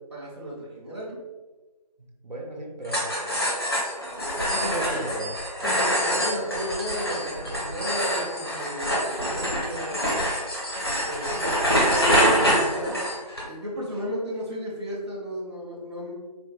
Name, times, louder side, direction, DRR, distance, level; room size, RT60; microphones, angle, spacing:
voice 1, 0.1-1.2 4.0-5.1 5.7-10.3 10.8-12.9 13.4-16.1, equal, 40° right, -5 dB, 0.8 m, -34 dB
voice 2, 2.0-3.0 4.3-6.3 7.1-7.5, right 1 dB, 85° right, 0 dB, 0.9 m, -36 dB
sound 1, 2.9-13.4, equal, 35° left, 0.7 m, -25 dB
4.2 x 2.2 x 2.8 m, 1.2 s
figure-of-eight pair, 175°, 21 cm